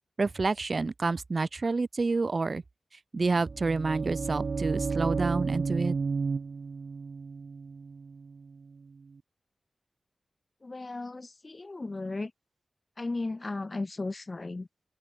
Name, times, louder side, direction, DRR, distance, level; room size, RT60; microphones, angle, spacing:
voice 1, 0.2-2.6 3.1-5.9, right 3 dB, 50° right, 4.6 m, -28 dB
sound 1, 3.4-9.1, right 4 dB, 65° right, 6.1 m, -33 dB
voice 2, 10.6-12.3 13.0-14.7, left 3 dB, 35° left, 5.4 m, -35 dB
open air
wide cardioid pair, 70°, 0 cm